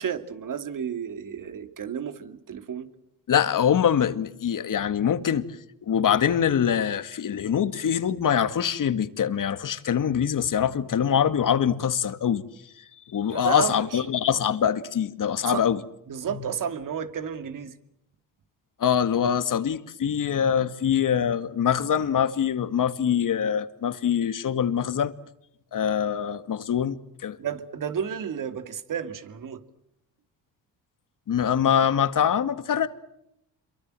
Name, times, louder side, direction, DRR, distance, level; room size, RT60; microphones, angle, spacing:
voice 1, 0.0-2.9 13.2-14.0 15.5-15.7 16.1-17.7 27.4-29.6, right 8 dB, 50° right, 2.6 m, -32 dB
voice 2, 3.3-5.4 5.9-12.4 13.1-15.8 18.8-25.1 25.7-27.4 31.3-32.9, left 8 dB, 50° left, 2.1 m, -24 dB
27.5 x 24.0 x 7.8 m
supercardioid pair, 70°, 41 cm